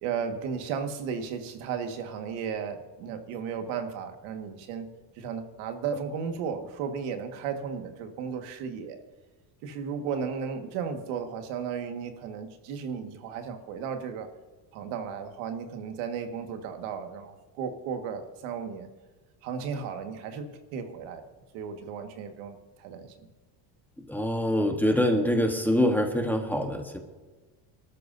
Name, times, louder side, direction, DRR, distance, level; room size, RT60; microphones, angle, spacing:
voice 1, 0.0-4.9 5.2-9.0 9.6-14.3 14.7-18.9 19.4-21.2 21.5-23.1, right 6 dB, 80° right, 6 dB, 1.8 m, -34 dB
voice 2, 24.1-27.0, equal, 5° left, 4 dB, 1.2 m, -25 dB
24.5 x 13.0 x 2.7 m, 1.3 s
cardioid pair, 140°, 47 cm